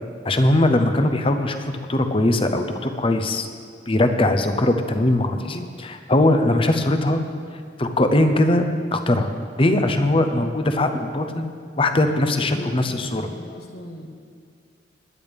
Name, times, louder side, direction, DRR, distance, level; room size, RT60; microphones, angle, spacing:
voice 1, 0.2-3.5 3.9-7.2 7.8-8.6 8.9-13.3, left 1 dB, 30° left, 7 dB, 0.8 m, -20 dB
voice 2, 12.3-14.1, equal, 60° left, 3 dB, 1.5 m, -38 dB
19.5 x 10.5 x 3.6 m, 2.2 s
head